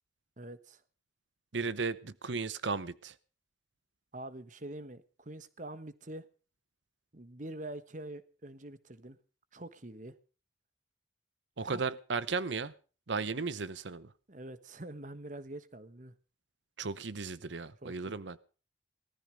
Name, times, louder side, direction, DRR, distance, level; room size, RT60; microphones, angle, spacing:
voice 1, 0.4-0.8 4.1-6.3 7.1-9.2 9.5-10.2 11.7-11.8 14.3-16.1 17.8-18.2, right 1 dB, 45° right, 14 dB, 1.3 m, -45 dB
voice 2, 1.5-3.1 11.6-12.7 13.1-14.1 16.8-18.4, right 4 dB, 85° right, 16 dB, 0.9 m, -35 dB
19.0 x 14.0 x 5.2 m, 0.38 s
head